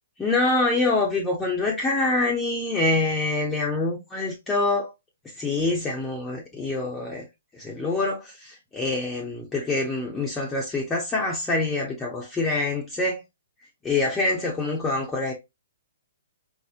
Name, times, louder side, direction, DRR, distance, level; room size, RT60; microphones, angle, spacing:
voice 1, 0.2-4.9 5.4-7.2 7.5-13.2 13.8-15.3, left 2 dB, 10° left, 0.7 m, -25 dB
4.1 x 2.0 x 2.5 m
hypercardioid pair, 135°, 0 cm